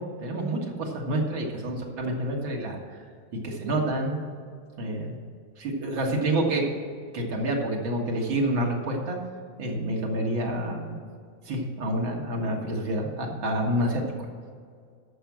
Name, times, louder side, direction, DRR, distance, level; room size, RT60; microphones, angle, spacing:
voice 1, 0.0-2.8 3.4-4.2 4.8-5.2 5.6-6.7 7.1-9.2 9.6-11.0 11.5-14.0, right 1 dB, 75° right, -1 dB, 2.5 m, -28 dB
11.0 x 6.6 x 7.4 m, 2.1 s
omnidirectional pair, 2.2 m